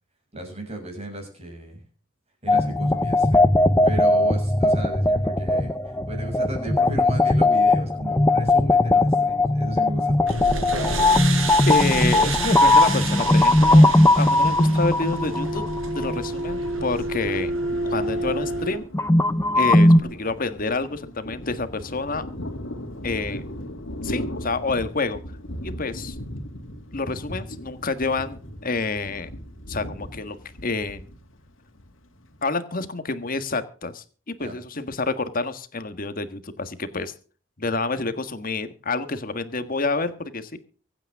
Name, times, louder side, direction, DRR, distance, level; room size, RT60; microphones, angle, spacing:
voice 1, 0.3-1.8 2.4-3.5 3.8-10.3 34.4-34.6, right 2 dB, 30° right, 3 dB, 6.7 m, -35 dB
sound 1, 2.5-16.2 18.9-20.0, left 2 dB, 15° left, 0.6 m, -19 dB
sound 2, 10.3-18.8, right 2 dB, 85° right, 4.7 m, -29 dB
voice 2, 11.7-13.9 14.2-15.7 15.9-17.5 17.8-18.9 19.5-22.3 23.0-23.5 24.0-25.2 25.6-26.1 26.9-29.3 29.7-31.0 32.4-37.1 37.6-40.6, left 3 dB, 45° left, 11 dB, 1.6 m, -28 dB
Thunder, 17.7-32.5, equal, 75° left, 2.7 m, -37 dB
24.5 x 9.0 x 3.6 m, 0.39 s
head